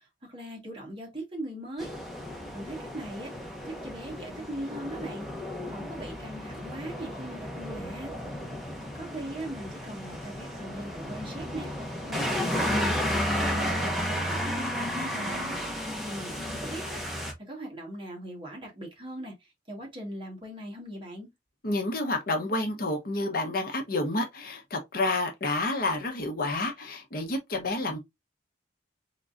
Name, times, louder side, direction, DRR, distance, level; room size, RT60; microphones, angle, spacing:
voice 1, 0.0-1.9 2.5-5.3 5.6-8.1 8.9-15.5 16.0-21.3, right 1 dB, 30° right, 1.6 m, -40 dB
sound 1, 1.8-17.3, equal, ahead, 0.9 m, -33 dB
voice 2, 21.6-28.0, left 2 dB, 50° left, 0.9 m, -29 dB
3.7 x 3.7 x 2.5 m
head